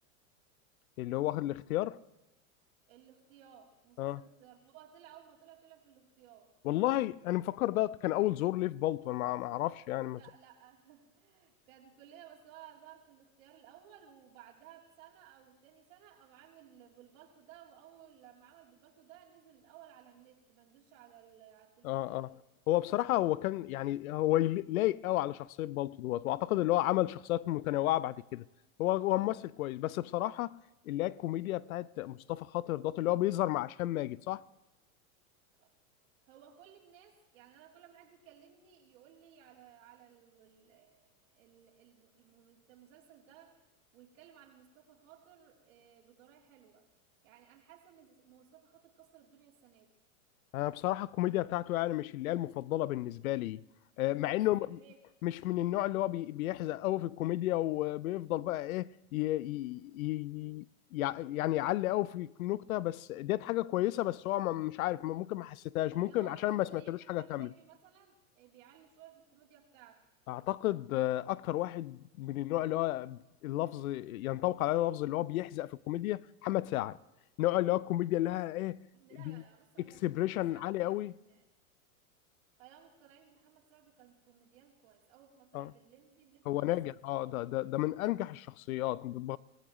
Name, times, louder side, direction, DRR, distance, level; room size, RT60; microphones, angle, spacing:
voice 1, 1.0-2.0 4.0-4.2 6.6-10.2 21.8-22.3 22.7-28.4 28.8-30.6 30.9-34.4 50.5-53.6 54.0-54.8 55.2-60.7 60.9-67.5 70.3-77.0 77.4-78.8 79.2-79.4 79.8-81.1 85.5-85.7 86.5-89.4, left 15 dB, 80° left, 0.6 m, -32 dB
voice 2, 2.9-6.5 10.2-22.4 35.5-35.7 36.3-43.6 43.9-46.9 47.2-49.9 54.3-55.0 65.9-70.0 78.9-81.4 82.6-87.0, right 10 dB, 65° right, 3.4 m, -58 dB
25.0 x 16.0 x 3.1 m
supercardioid pair, 145°, 41 cm